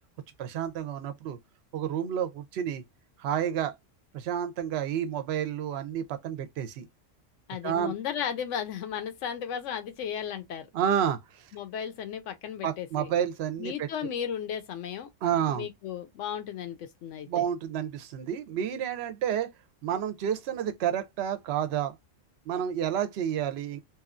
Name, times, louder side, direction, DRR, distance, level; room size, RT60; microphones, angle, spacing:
voice 1, 0.4-1.4 1.7-2.8 3.2-3.7 4.1-6.8 7.6-7.9 10.7-11.5 12.6-13.9 15.2-15.7 17.3-19.5 19.8-21.9 22.5-23.8, right 9 dB, 65° right, 0.7 m, -30 dB
voice 2, 7.5-10.7 11.5-13.1 13.6-15.1 15.5-17.4, left 8 dB, 80° left, 0.9 m, -35 dB
2.9 x 2.3 x 2.4 m
omnidirectional pair, 1.3 m